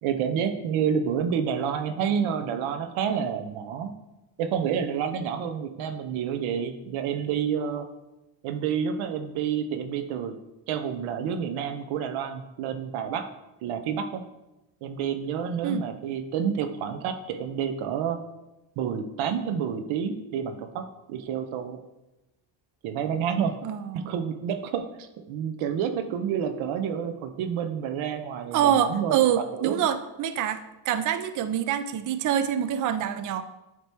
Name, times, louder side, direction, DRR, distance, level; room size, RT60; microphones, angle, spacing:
voice 1, 0.0-3.9 4.4-7.8 8.4-10.3 10.7-13.2 13.6-14.2 14.8-18.2 18.8-21.8 22.8-23.5 23.9-29.8, right 7 dB, 90° right, 7 dB, 0.8 m, -29 dB
voice 2, 23.6-24.1 28.5-33.4, right 9 dB, 45° right, 11 dB, 0.5 m, -26 dB
8.4 x 3.0 x 4.4 m, 0.97 s
cardioid pair, 100°, 47 cm